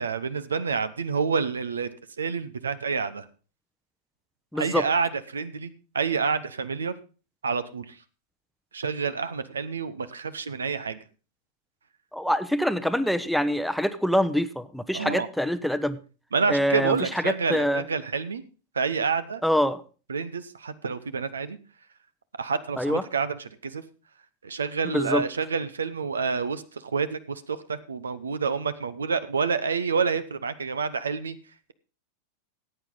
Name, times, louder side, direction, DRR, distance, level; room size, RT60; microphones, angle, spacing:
voice 1, 0.0-1.9 2.2-3.3 4.5-7.0 7.4-8.0 8.7-11.0 14.9-15.3 16.3-18.4 18.7-19.4 20.1-21.6 22.4-23.8 24.4-31.4, right 5 dB, 70° right, 15 dB, 0.8 m, -28 dB
voice 2, 4.5-4.8 12.1-16.0 16.5-16.9 17.5-17.8 19.4-19.8 22.8-23.0 24.9-25.2, equal, ahead, 12 dB, 0.8 m, -25 dB
15.0 x 8.8 x 3.8 m, 0.34 s
figure-of-eight pair, 90°, 0 cm